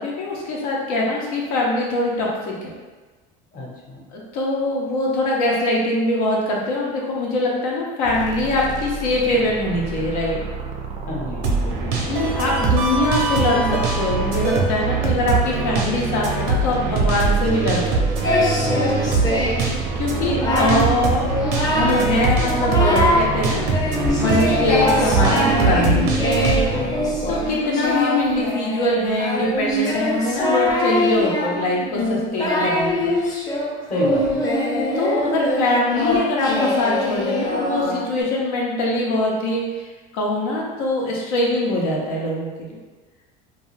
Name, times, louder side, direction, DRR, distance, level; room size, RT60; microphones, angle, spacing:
voice 1, 0.0-2.7 4.1-10.4 12.1-18.2 20.0-21.3 21.6-23.7 24.2-26.1 27.3-33.1 35.0-39.9 40.1-42.7, left 1 dB, 90° left, -3 dB, 0.7 m, -23 dB
voice 2, 3.5-4.0 11.0-12.2 18.6-19.5 26.6-27.2 33.8-34.5, left 2 dB, 45° left, -3 dB, 0.8 m, -32 dB
sound 1, 8.0-27.7, right 4 dB, 40° right, 0.4 m, -32 dB
sound 2, 11.4-26.8, right 4 dB, 80° right, 0.6 m, -23 dB
Singing, 18.2-19.7 20.1-20.9 21.3-22.1 22.4-23.3 23.7-38.2, left 1 dB, 20° left, 0.6 m, -22 dB
2.5 x 2.3 x 3.1 m, 1.3 s
supercardioid pair, 115°, 19 cm